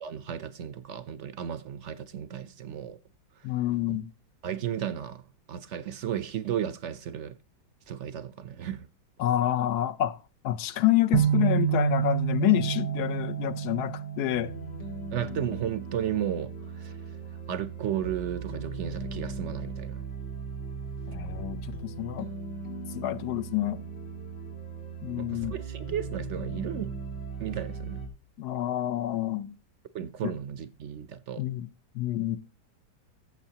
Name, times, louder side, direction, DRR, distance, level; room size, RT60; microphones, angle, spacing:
voice 1, 0.0-3.0 3.9-4.0 4.4-5.2 5.5-7.3 7.9-8.9 15.1-17.0 17.5-20.0 25.2-26.9 27.4-28.1 29.9-31.4, right 9 dB, 65° right, 0.7 m, -34 dB
voice 2, 3.4-4.1 9.2-10.2 10.4-14.5 21.1-22.3 22.9-23.8 25.0-25.6 28.4-29.5 30.2-30.3 31.4-31.7 31.9-32.4, left 13 dB, 70° left, 1.2 m, -28 dB
sound 1, 11.1-15.1, right 10 dB, 80° right, 1.3 m, -28 dB
sound 2, 12.4-28.1, right 4 dB, 90° left, 2.7 m, -38 dB
14.5 x 7.0 x 2.8 m
omnidirectional pair, 1.8 m